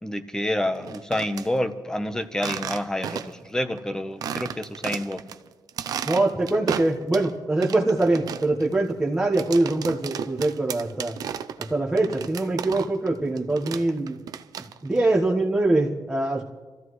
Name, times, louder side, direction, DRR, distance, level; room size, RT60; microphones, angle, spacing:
voice 1, 0.0-5.2, left 1 dB, 10° left, 10 dB, 0.9 m, -28 dB
sound 1, 0.8-1.5 2.3-3.5 3.8-3.9 4.2-5.4 5.7-7.3 7.6-13.1 13.4-15.0, right 8 dB, 70° right, 0.6 m, -34 dB
voice 2, 6.0-11.1 11.7-14.2 14.8-16.4, right 2 dB, 10° right, -4 dB, 1.3 m, -23 dB
26.5 x 14.5 x 3.2 m, 1.3 s
cardioid pair, 130°, 7 cm